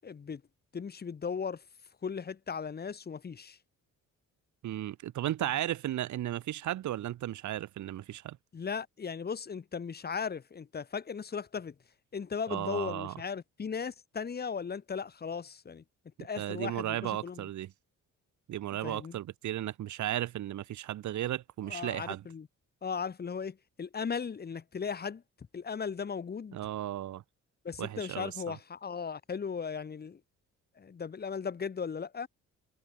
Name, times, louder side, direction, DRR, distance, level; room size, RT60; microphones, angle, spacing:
voice 1, 0.0-0.4 0.7-1.6 2.0-3.6 8.5-11.7 12.1-15.8 16.2-17.5 18.8-19.2 21.7-22.5 22.8-25.2 25.5-26.6 27.6-30.2 30.8-32.3, left 6 dB, 30° left, 4.2 m, -37 dB
voice 2, 4.6-8.4 12.5-13.2 16.2-17.7 18.5-22.2 26.5-27.2 27.8-28.6, right 13 dB, 75° right, 6.5 m, -35 dB
cardioid pair, 135°, 30 cm